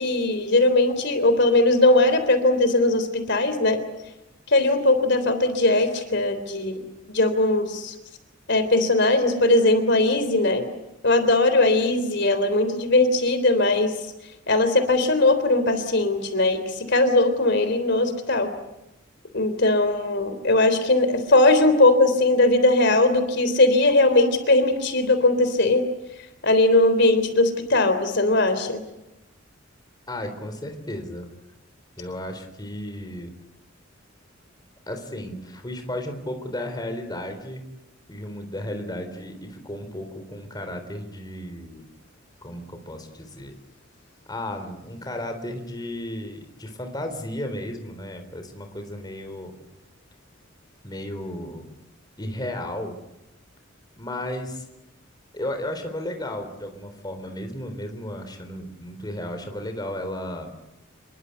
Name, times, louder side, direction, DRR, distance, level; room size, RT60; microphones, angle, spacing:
voice 1, 0.0-3.8 4.5-6.8 7.1-7.9 8.5-10.7 11.0-13.9 14.5-18.5 19.3-25.8 26.4-28.8, left 2 dB, 60° left, 9 dB, 3.5 m, -19 dB
voice 2, 30.1-31.3 32.0-33.3 34.9-37.6 38.1-41.8 42.4-43.5 44.3-49.5 50.8-51.7 52.2-53.0 54.0-54.6 55.3-60.5, left 1 dB, 20° left, 6 dB, 3.8 m, -34 dB
27.0 x 22.5 x 8.2 m, 0.92 s
head